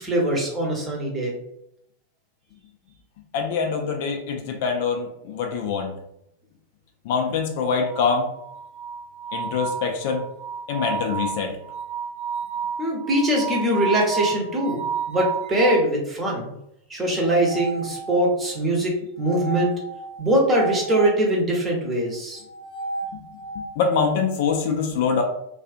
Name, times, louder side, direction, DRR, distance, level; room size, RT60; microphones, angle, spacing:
voice 1, 0.0-1.3 12.8-16.5 16.9-19.7 20.2-22.4, right 1 dB, 20° right, -1 dB, 0.8 m, -22 dB
voice 2, 3.3-5.9 7.1-8.2 9.3-10.2 10.7-11.5 23.8-25.2, left 5 dB, 50° left, 3 dB, 0.4 m, -24 dB
sound 1, 7.8-15.9 17.2-18.5 19.2-21.2 22.4-23.7, right 6 dB, 80° right, 0.8 m, -32 dB
2.4 x 2.4 x 2.5 m, 0.77 s
figure-of-eight pair, 90°, 0 cm